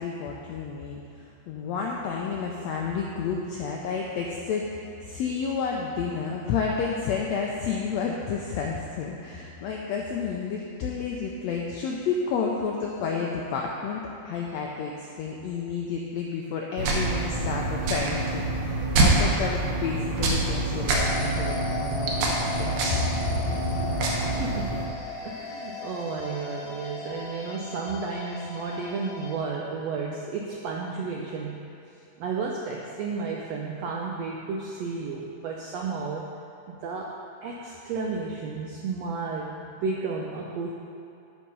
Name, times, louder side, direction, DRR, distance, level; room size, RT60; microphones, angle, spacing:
voice 1, 0.0-23.0, left 5 dB, 85° left, -1 dB, 1.5 m, -31 dB
sound 1, 16.8-24.8, right 2 dB, 70° right, 2.4 m, -26 dB
sound 2, 20.9-29.4, left 4 dB, 65° left, 3.4 m, -37 dB
voice 2, 24.3-24.9 25.2-31.6 32.2-36.3 36.7-40.7, right 4 dB, 90° right, -1 dB, 1.4 m, -32 dB
12.0 x 4.7 x 5.4 m, 2.6 s
omnidirectional pair, 3.8 m